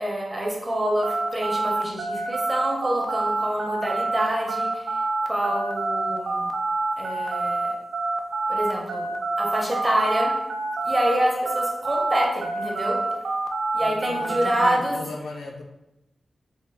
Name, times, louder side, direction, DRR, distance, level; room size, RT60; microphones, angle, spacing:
voice 1, 0.0-6.5 7.0-7.7 8.5-9.1 9.4-10.3 10.8-13.0 13.7-15.0, equal, 20° right, -1 dB, 0.7 m, -26 dB
sound 1, 1.0-11.2 11.5-14.7, right 3 dB, 60° right, 0.3 m, -27 dB
voice 2, 13.8-15.6, left 3 dB, 85° left, 2 dB, 0.5 m, -37 dB
3.5 x 2.4 x 3.4 m, 0.91 s
wide cardioid pair, 160°, 0 cm